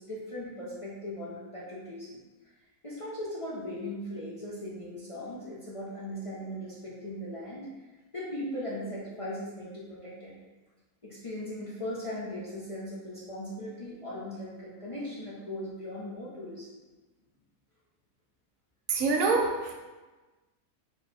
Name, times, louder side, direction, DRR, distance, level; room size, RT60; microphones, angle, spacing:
voice 1, 0.0-2.2 2.8-7.7 8.1-10.3 11.0-16.8, left 1 dB, 45° left, -7 dB, 0.4 m, -38 dB
voice 2, 18.9-19.7, right 4 dB, 65° right, 1 dB, 0.9 m, -25 dB
4.5 x 2.3 x 4.1 m, 1.2 s
omnidirectional pair, 1.7 m